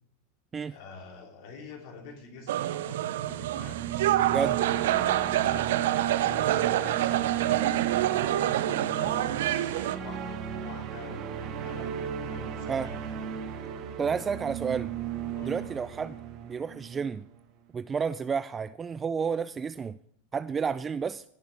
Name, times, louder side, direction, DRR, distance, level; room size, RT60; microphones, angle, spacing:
voice 1, 0.7-4.4 4.7-7.5 8.0-13.0 15.3-15.7, left 4 dB, 60° left, 1 dB, 2.8 m, -47 dB
sound 1, 2.5-10.0, right 13 dB, 75° right, 0.5 m, -27 dB
sound 2, 3.1-17.3, right 9 dB, 45° right, 1.4 m, -35 dB
voice 2, 14.0-14.9 15.4-16.2 16.4-17.2 17.7-20.0 20.3-21.2, right 6 dB, 20° right, 14 dB, 0.3 m, -31 dB
16.0 x 6.7 x 3.4 m, 0.70 s
hypercardioid pair, 110°, 0 cm